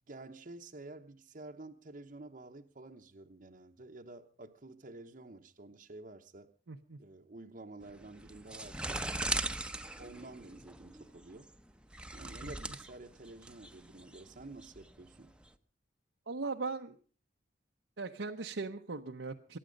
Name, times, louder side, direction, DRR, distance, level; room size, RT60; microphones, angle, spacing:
voice 1, 0.0-6.5 7.0-9.1 10.0-11.5 12.1-15.3, right 2 dB, 45° right, 3 dB, 0.9 m, -50 dB
voice 2, 6.7-7.0 12.4-12.5 16.3-17.0 18.0-19.6, right 3 dB, 90° right, 2 dB, 0.9 m, -39 dB
sound 1, 7.8-15.5, right 2 dB, 5° right, 0.8 m, -40 dB
23.5 x 10.0 x 5.2 m, 0.42 s
head